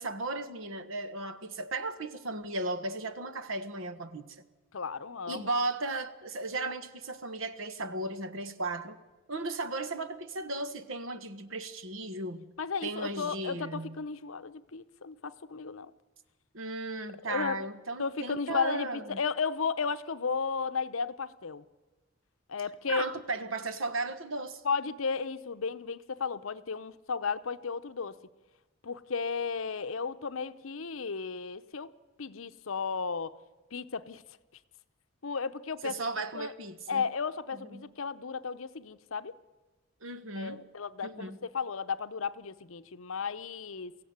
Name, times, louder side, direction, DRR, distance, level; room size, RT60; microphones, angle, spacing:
voice 1, 0.0-4.4 5.3-9.0 9.3-12.5 12.8-14.0 16.5-19.2 22.9-24.6 35.8-37.1 37.6-37.9 40.0-40.6 41.0-41.4, right 2 dB, 70° right, 1.4 m, -36 dB
voice 2, 4.7-5.5 12.6-15.9 17.3-17.6 18.0-21.6 22.5-23.0 24.6-28.1 28.8-31.9 32.2-33.3 33.7-34.2 35.2-36.0 36.3-36.5 36.9-39.3 40.3-44.0, left 5 dB, 75° left, 0.8 m, -34 dB
23.0 x 15.5 x 9.5 m
head